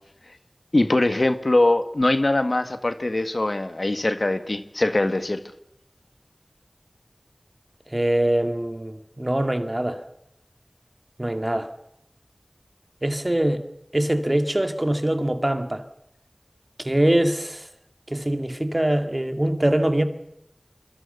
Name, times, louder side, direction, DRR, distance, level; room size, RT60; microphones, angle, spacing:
voice 1, 0.7-5.4, left 2 dB, 65° left, 1.8 m, -22 dB
voice 2, 7.9-10.0 11.2-11.7 13.0-13.6 13.9-15.9 16.8-17.7 18.1-20.1, right 1 dB, 35° right, 2.2 m, -23 dB
26.0 x 24.5 x 6.9 m
wide cardioid pair, 40°, 0 cm